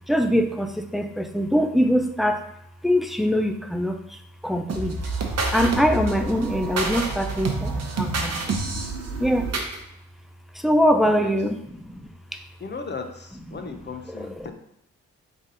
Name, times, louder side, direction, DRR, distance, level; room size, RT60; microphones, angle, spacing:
voice 1, 0.1-2.5 2.8-5.0 5.5-8.6 9.2-9.5 10.5-12.4, equal, ahead, 7 dB, 0.5 m, -23 dB
sound 1, 4.7-9.8, right 3 dB, 45° right, 1.0 m, -28 dB
voice 2, 11.0-11.4 12.6-14.5, left 4 dB, 30° left, 6 dB, 0.9 m, -36 dB
3.6 x 3.6 x 4.0 m, 0.77 s
hypercardioid pair, 45°, 36 cm